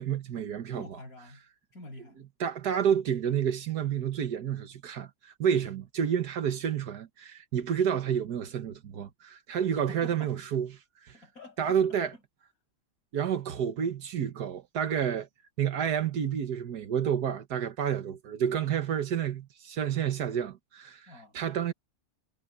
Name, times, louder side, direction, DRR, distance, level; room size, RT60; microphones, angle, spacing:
voice 1, 0.0-0.9 2.4-10.7 11.0-11.2 11.6-12.1 13.1-15.3 15.6-21.7, right 8 dB, 85° right, 1.8 m, -29 dB
voice 2, 0.7-1.4 1.7-2.2 9.7-10.3 11.1-12.2 21.1-21.4, left 1 dB, 65° left, 6.9 m, -47 dB
omnidirectional pair, 1.7 m